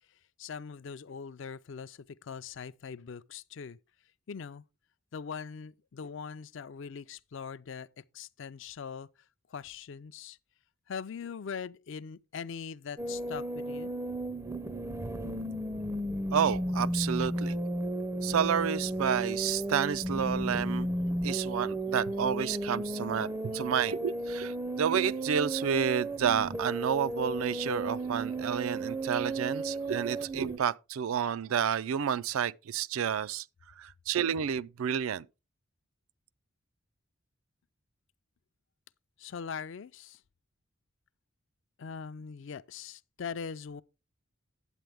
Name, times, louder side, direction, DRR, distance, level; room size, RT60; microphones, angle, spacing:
voice 1, 0.4-3.8 4.3-4.6 5.1-9.1 9.5-10.4 10.9-13.9 39.2-40.2 41.8-43.8, left 6 dB, 60° left, 0.4 m, -41 dB
sound 1, 13.0-30.6, right 1 dB, 15° right, 0.4 m, -34 dB
voice 2, 16.3-17.6 18.2-20.9 21.2-33.4 33.8-35.3, right 8 dB, 80° right, 0.4 m, -30 dB
9.1 x 8.3 x 3.4 m
head